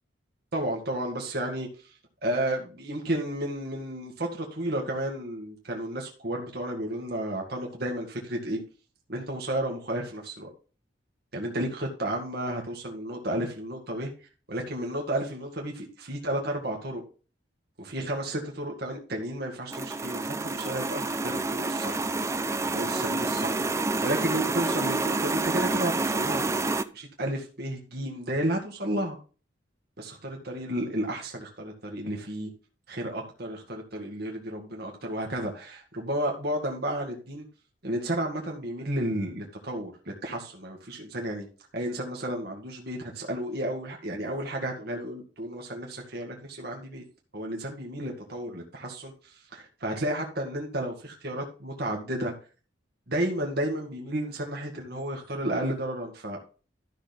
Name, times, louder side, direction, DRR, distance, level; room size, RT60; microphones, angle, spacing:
voice 1, 0.5-1.9 2.2-8.6 9.1-10.5 11.3-14.1 14.5-17.0 17.8-22.0 22.6-23.6 24.0-26.5 26.9-29.2 30.0-32.5 32.9-37.5 37.8-41.5 41.7-47.0 47.3-52.3 53.1-56.4, right 1 dB, 55° right, 2.1 m, -32 dB
sound 1, 19.7-26.8, right 3 dB, 15° right, 0.5 m, -28 dB
13.0 x 6.2 x 3.6 m
head